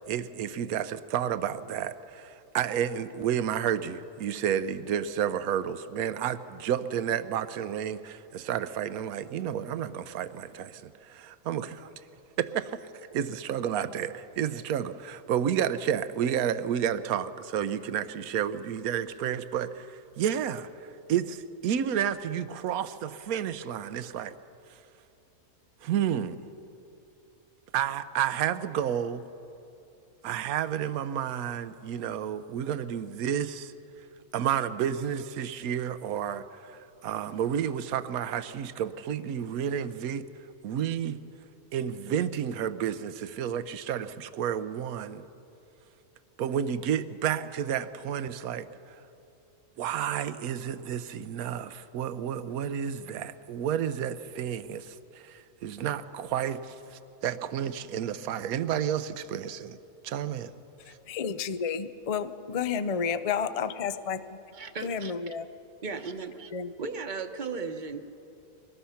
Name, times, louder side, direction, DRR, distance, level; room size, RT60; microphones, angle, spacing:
voice 1, 0.1-11.9 12.4-20.7 21.1-24.3 25.8-26.4 27.7-29.2 30.2-33.7 34.3-40.3 40.6-41.2 41.7-45.2 46.4-48.7 49.8-59.8 60.0-60.5, right 9 dB, 80° right, 1.2 m, -31 dB
voice 2, 60.9-64.2 64.8-65.5 66.5-66.7, left 6 dB, 55° left, 0.4 m, -31 dB
voice 3, 64.5-65.1 65.8-66.5 66.8-68.0, right 4 dB, 35° right, 1.0 m, -36 dB
23.0 x 19.5 x 5.7 m
omnidirectional pair, 1.5 m